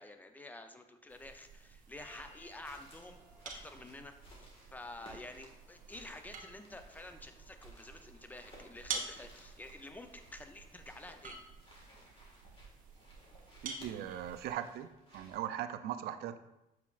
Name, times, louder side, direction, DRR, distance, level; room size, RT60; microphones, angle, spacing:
voice 1, 0.0-11.4, left 2 dB, 10° left, 7 dB, 0.6 m, -50 dB
sound 1, 1.1-14.5, right 5 dB, 50° right, 1.0 m, -49 dB
Piano, 2.0-6.6 7.6-7.8 9.7-9.8, right 1 dB, 20° right, 2.4 m, -64 dB
sound 2, 2.1-15.4, equal, 35° left, 1.8 m, -59 dB
voice 2, 13.6-16.4, right 11 dB, 70° right, 11 dB, 0.5 m, -39 dB
7.1 x 5.9 x 2.5 m, 0.90 s
cardioid pair, 110°, 17 cm